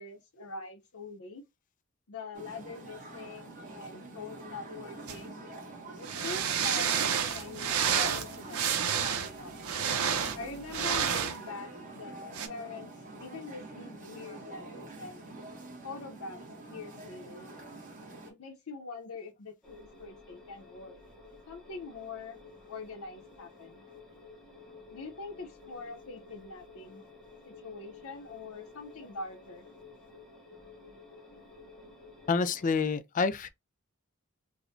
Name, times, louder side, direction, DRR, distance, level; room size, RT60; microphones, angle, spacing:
voice 1, 0.0-1.4 2.1-5.4 6.0-9.5 10.3-12.9 13.2-15.2 15.8-16.4 16.7-17.5 18.3-21.0 21.5-22.4 22.7-23.8 24.9-27.0 27.5-29.7, left 3 dB, 80° left, 0.7 m, -44 dB
sound 1, 2.3-18.3, right 2 dB, 35° right, 1.0 m, -46 dB
sound 2, 5.1-5.2 6.0-11.4 12.3-12.5, right 8 dB, 90° right, 0.6 m, -30 dB
sound 3, 19.6-33.0, left 3 dB, ahead, 0.9 m, -53 dB
voice 2, 32.3-33.5, left 4 dB, 35° left, 0.3 m, -28 dB
4.8 x 2.1 x 2.6 m
head